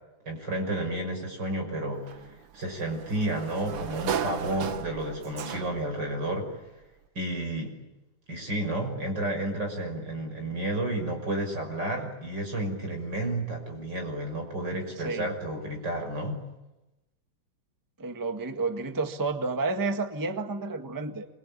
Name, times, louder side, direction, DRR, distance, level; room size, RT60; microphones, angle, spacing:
voice 1, 0.2-2.1 2.5-6.5 7.1-7.7 8.3-16.4, right 1 dB, 30° right, 4 dB, 6.6 m, -31 dB
Sliding door, 2.1-6.0, right 8 dB, 55° right, 1.9 m, -35 dB
voice 2, 18.0-21.3, right 3 dB, 15° right, 7 dB, 0.8 m, -30 dB
28.0 x 24.0 x 8.9 m, 1.0 s
omnidirectional pair, 3.6 m